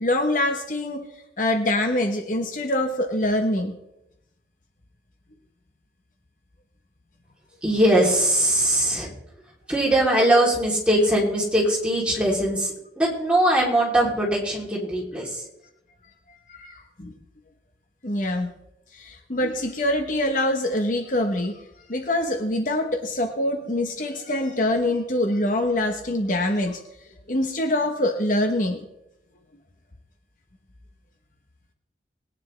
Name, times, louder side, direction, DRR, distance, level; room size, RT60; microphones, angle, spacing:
voice 1, 0.0-1.1 1.4-3.7 16.3-17.1 18.0-18.5 18.9-21.6 21.9-26.8 27.3-28.9, left 1 dB, 50° left, 5 dB, 1.1 m, -24 dB
voice 2, 7.6-9.1 9.7-15.4, right 1 dB, 5° right, -3 dB, 3.3 m, -21 dB
21.0 x 9.5 x 3.3 m, 0.87 s
head